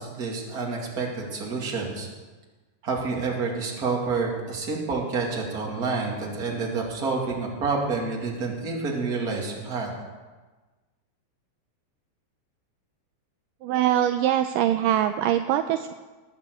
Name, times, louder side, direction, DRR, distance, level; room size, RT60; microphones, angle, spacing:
voice 1, 0.0-2.1 2.8-9.9, right 4 dB, 30° right, -1 dB, 2.3 m, -28 dB
voice 2, 13.6-15.9, right 11 dB, 80° right, 8 dB, 2.0 m, -23 dB
19.0 x 6.9 x 8.3 m, 1.3 s
omnidirectional pair, 4.3 m